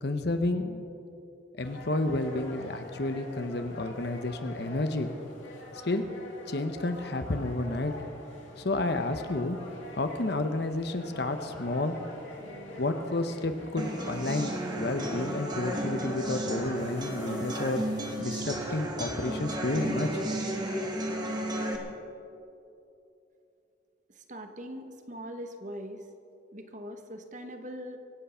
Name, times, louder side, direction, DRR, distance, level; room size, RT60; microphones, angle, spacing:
voice 1, 0.0-0.8 1.6-5.1 5.8-6.0 6.5-7.9 8.6-9.6 9.9-12.0 12.8-17.8 18.2-20.2, left 2 dB, 60° left, 8 dB, 0.9 m, -31 dB
sound 1, 1.6-18.2, left 1 dB, 85° left, 2.7 m, -45 dB
sound 2, 11.1-19.3, right 2 dB, 65° right, 2.5 m, -51 dB
sound 3, 13.8-21.8, right 1 dB, 20° right, 1.5 m, -33 dB
voice 2, 24.1-26.1 26.5-28.0, equal, 40° right, 6 dB, 1.2 m, -41 dB
24.0 x 8.3 x 5.6 m, 2.8 s
head